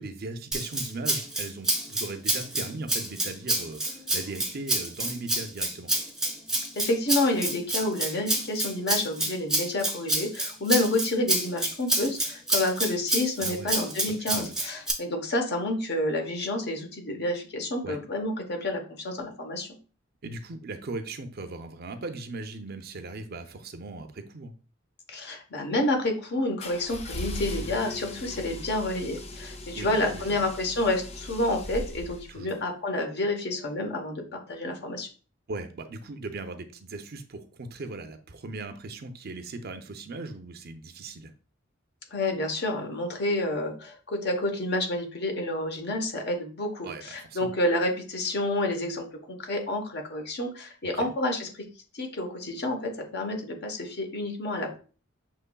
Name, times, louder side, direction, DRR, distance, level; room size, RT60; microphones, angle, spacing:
voice 1, 0.0-5.9 13.4-13.7 14.1-14.6 17.8-18.0 20.2-24.5 29.7-30.4 32.3-32.6 35.5-41.3 46.8-47.5 50.9-51.1, right 2 dB, 50° right, 8 dB, 0.5 m, -38 dB
Rattle (instrument), 0.5-14.9, right 2 dB, 5° right, 0.7 m, -28 dB
voice 2, 6.7-19.7 25.1-35.1 42.1-51.6 51.9-54.8, left 1 dB, 55° left, 3 dB, 1.0 m, -29 dB
sound 1, 26.6-32.6, left 1 dB, 30° left, 0.5 m, -38 dB
6.6 x 3.0 x 2.2 m, 0.38 s
head